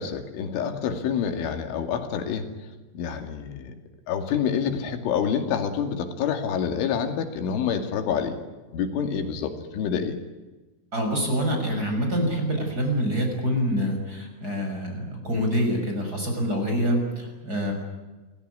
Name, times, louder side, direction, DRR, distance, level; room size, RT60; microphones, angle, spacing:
voice 1, 0.0-2.5 2.9-3.7 4.1-8.4 8.7-10.2, left 7 dB, 75° left, 6 dB, 4.8 m, -27 dB
voice 2, 10.9-17.7, equal, 20° right, 3 dB, 6.4 m, -26 dB
27.5 x 18.0 x 9.7 m, 1.2 s
omnidirectional pair, 5.7 m